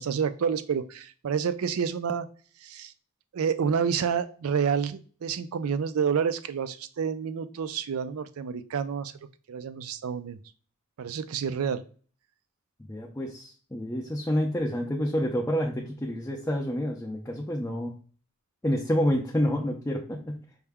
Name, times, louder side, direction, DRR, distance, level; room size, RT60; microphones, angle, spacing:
voice 1, 0.0-2.3 2.6-2.9 3.3-10.4 11.0-11.8, right 6 dB, 70° right, 12 dB, 0.4 m, -29 dB
voice 2, 12.9-17.9 18.6-20.4, equal, 10° left, -1 dB, 0.4 m, -28 dB
5.6 x 2.1 x 3.4 m, 0.40 s
head